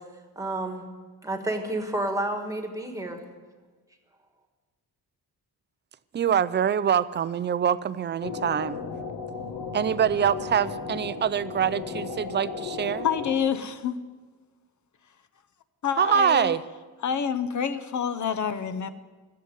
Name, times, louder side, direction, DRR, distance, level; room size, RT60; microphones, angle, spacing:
voice 1, 0.3-0.9 1.2-3.2, right 1 dB, 10° right, 4 dB, 1.5 m, -30 dB
voice 2, 6.1-8.8 9.7-13.1 16.0-16.6, right 8 dB, 30° right, 16 dB, 0.4 m, -24 dB
sound 1, 8.2-13.4, left 5 dB, 75° left, 1.4 m, -35 dB
voice 3, 13.0-14.0 15.8-16.6 17.0-18.9, left 7 dB, 50° left, 12 dB, 0.8 m, -27 dB
14.0 x 7.8 x 9.5 m, 1.3 s
wide cardioid pair, 170°, 36 cm